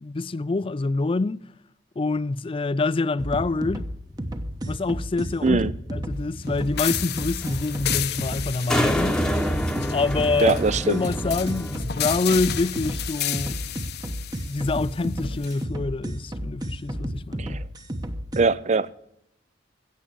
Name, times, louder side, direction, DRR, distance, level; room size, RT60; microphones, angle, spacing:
voice 1, 0.0-1.4 2.0-3.9 4.6-5.6 5.9-9.2 9.9-10.6 10.8-13.6 14.5-17.6, left 3 dB, 30° left, 0.4 m, -26 dB
sound 1, 3.2-18.4, equal, 20° right, 1.0 m, -32 dB
sound 2, 4.1-11.8, equal, 5° left, 1.0 m, -30 dB
sound 3, 6.8-15.6, left 12 dB, 55° left, 0.8 m, -33 dB
voice 2, 10.4-11.0 17.4-17.6 18.4-18.9, right 4 dB, 40° right, 0.5 m, -22 dB
16.0 x 7.4 x 6.8 m
head